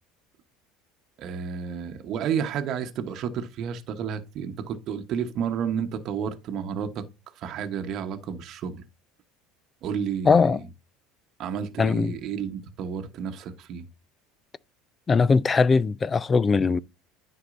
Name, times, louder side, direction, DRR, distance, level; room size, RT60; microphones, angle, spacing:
voice 1, 1.2-7.0 7.4-8.8 9.8-10.6 11.4-13.9, right 7 dB, 55° right, 1.0 m, -31 dB
voice 2, 10.2-10.6 11.8-12.2 15.1-16.8, left 4 dB, 30° left, 0.4 m, -20 dB
9.7 x 4.6 x 2.5 m
hypercardioid pair, 85°, 0 cm